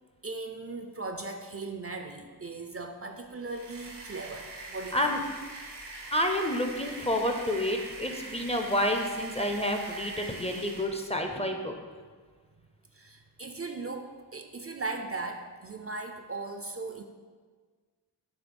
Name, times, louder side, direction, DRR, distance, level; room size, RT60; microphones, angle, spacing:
voice 1, 0.2-5.1 12.9-17.0, right 3 dB, 35° right, 5 dB, 0.4 m, -38 dB
sound 1, 3.3-11.1, right 2 dB, 85° right, 0.9 m, -43 dB
voice 2, 6.1-11.7, left 1 dB, 15° left, 3 dB, 0.6 m, -29 dB
7.1 x 3.1 x 5.3 m, 1.5 s
wide cardioid pair, 65°, 40 cm